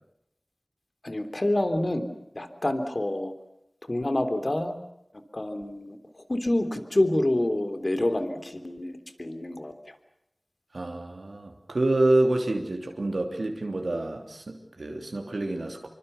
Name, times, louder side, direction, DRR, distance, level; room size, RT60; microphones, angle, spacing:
voice 1, 1.0-2.1 2.4-3.3 3.9-4.8 5.3-9.7, left 1 dB, 50° left, 9 dB, 3.4 m, -27 dB
voice 2, 10.7-15.9, right 2 dB, 85° right, 2 dB, 3.1 m, -27 dB
27.0 x 24.5 x 6.9 m, 0.80 s
wide cardioid pair, 40°, 0 cm